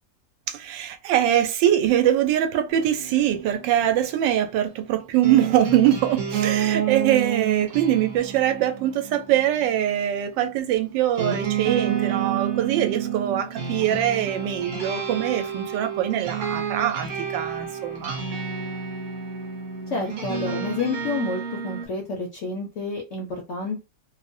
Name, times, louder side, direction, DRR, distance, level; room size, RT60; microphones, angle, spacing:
voice 1, 0.5-18.2, right 11 dB, 85° right, 1.2 m, -23 dB
sound 1, 2.7-21.9, right 8 dB, 55° right, 0.9 m, -30 dB
voice 2, 19.9-23.8, left 3 dB, 70° left, 0.7 m, -29 dB
2.9 x 2.0 x 2.5 m
omnidirectional pair, 1.9 m